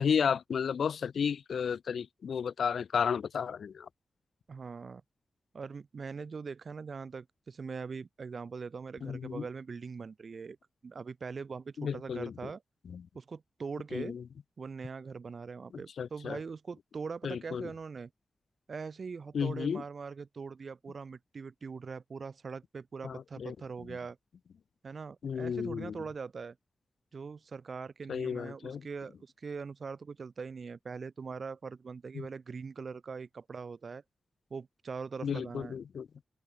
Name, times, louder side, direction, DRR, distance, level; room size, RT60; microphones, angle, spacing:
voice 1, 0.0-3.9 9.0-9.5 11.8-12.3 12.9-13.1 13.9-14.2 16.0-16.4 17.2-17.7 19.3-19.8 23.0-23.5 25.2-26.0 28.1-28.8 32.1-32.3 35.2-36.1, left 7 dB, 90° left, 0.5 m, -33 dB
voice 2, 4.5-5.0 5.5-10.6 10.8-12.6 13.1-14.2 14.6-18.1 18.7-24.2 24.8-26.6 27.1-34.0 34.5-35.7, right 5 dB, 60° right, 0.6 m, -42 dB
open air
wide cardioid pair, 90°, 0 cm